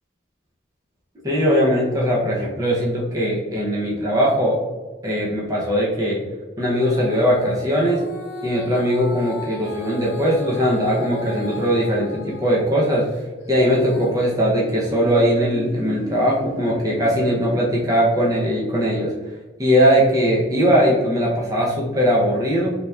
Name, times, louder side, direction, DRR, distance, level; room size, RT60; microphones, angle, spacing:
voice 1, 1.2-4.6 5.0-6.2 6.6-8.0 8.4-13.1 13.5-19.1 19.6-22.7, equal, 20° right, -4 dB, 0.5 m, -20 dB
Female singing, 6.7-12.6 13.1-17.4 18.0-18.1, left 1 dB, 65° left, 0.8 m, -36 dB
3.3 x 2.7 x 2.2 m, 1.2 s
head